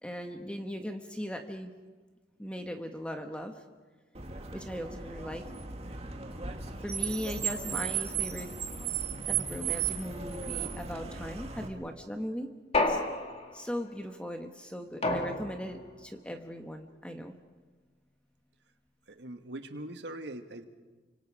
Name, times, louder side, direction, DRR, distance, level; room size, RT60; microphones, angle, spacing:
voice 1, 0.0-1.7 2.4-3.5 4.5-5.4 6.8-8.5 9.3-12.5 12.8-13.0 13.5-17.3, equal, 5° left, 5 dB, 1.3 m, -39 dB
Car, 4.1-11.7, right 7 dB, 35° right, 1.8 m, -35 dB
sound 1, 12.7-13.7 15.0-15.9, left 2 dB, 35° left, 2.3 m, -30 dB
voice 2, 19.1-20.7, right 1 dB, 70° right, 7 dB, 1.7 m, -42 dB
30.0 x 25.5 x 4.9 m, 1.3 s
head